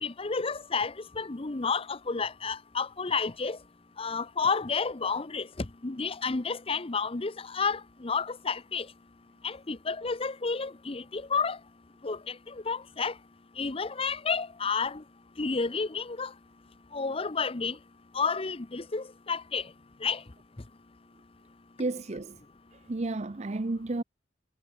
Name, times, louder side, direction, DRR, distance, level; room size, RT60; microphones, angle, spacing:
voice 1, 0.0-3.6 4.0-8.9 9.4-11.6 12.0-13.1 13.6-15.0 15.4-16.3 16.9-17.8 18.1-19.7 20.0-20.2, left 5 dB, 35° left, 0.8 m, -31 dB
voice 2, 21.8-22.4 22.9-24.0, right 2 dB, 40° right, 0.7 m, -32 dB
head